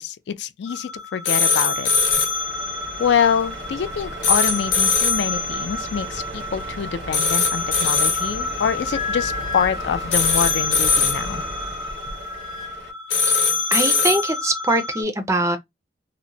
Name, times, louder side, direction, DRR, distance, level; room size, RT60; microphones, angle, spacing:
voice 1, 0.0-1.9 3.0-11.4, left 7 dB, 65° left, 0.3 m, -25 dB
sound 1, 0.7-15.0, left 4 dB, 90° left, 0.8 m, -23 dB
Truck, 1.7-12.9, right 2 dB, 80° right, 0.7 m, -36 dB
Wind instrument woodwind instrument, 8.5-12.7, left 5 dB, 35° left, 0.8 m, -33 dB
voice 2, 13.7-15.6, right 2 dB, 15° right, 0.4 m, -22 dB
2.8 x 2.1 x 2.6 m
head